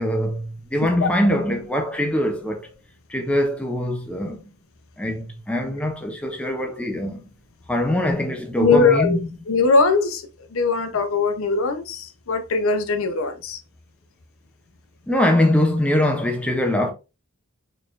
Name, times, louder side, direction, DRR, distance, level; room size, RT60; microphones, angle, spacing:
voice 1, 0.0-2.7 3.1-4.5 5.0-7.3 7.7-9.3 15.1-16.9, left 1 dB, 5° left, 0.4 m, -22 dB
voice 2, 8.6-9.2 9.5-13.6, left 4 dB, 65° left, 0.6 m, -21 dB
4.2 x 3.2 x 2.4 m
head